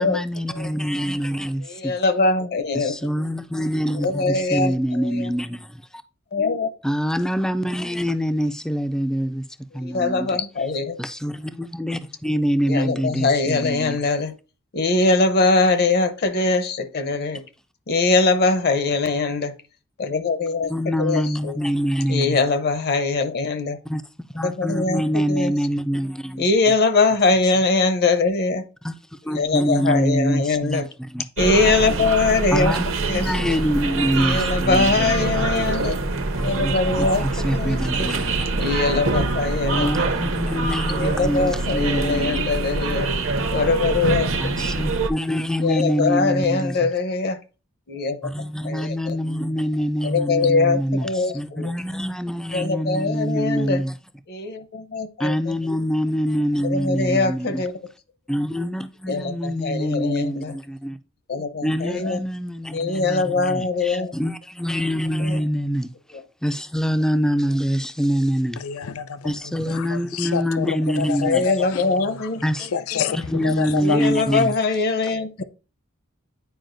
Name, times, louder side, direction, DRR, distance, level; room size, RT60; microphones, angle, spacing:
voice 1, 0.0-1.9 2.7-6.0 6.8-9.4 9.7-10.4 11.0-14.0 20.7-22.4 23.9-24.0 24.3-26.5 28.8-31.2 32.5-32.8 33.1-35.1 36.4-38.5 39.6-42.4 44.4-46.9 48.2-54.0 55.2-57.6 58.3-61.0 61.6-68.6 69.2-71.4 72.4-72.7 73.1-74.5 75.0-75.1, equal, 5° left, 0.3 m, -25 dB
voice 2, 1.7-2.9 4.0-5.3 6.3-6.7 9.8-11.0 12.7-14.3 14.7-17.4 17.9-19.5 20.0-20.7 21.0-21.5 22.1-23.8 24.4-25.5 26.4-28.6 29.3-30.9 31.4-32.7 33.0-33.6 34.2-36.0 36.4-37.2 37.5-38.1 38.6-39.9 40.9-43.1 43.5-44.3 45.6-47.4 47.9-48.3 48.6-49.2 50.0-51.7 52.5-53.8 54.3-55.5 56.6-57.7 59.1-60.5 61.3-62.2 62.7-64.1 65.2-65.4 71.2-72.4 73.0-73.2 73.8-75.4, left 3 dB, 50° left, 0.7 m, -22 dB
sound 1, 31.4-45.1, right 3 dB, 70° right, 0.8 m, -24 dB
voice 3, 68.6-69.3 69.7-72.0 72.7-73.2 73.4-74.0, left 8 dB, 80° left, 0.4 m, -28 dB
9.1 x 4.8 x 2.6 m
head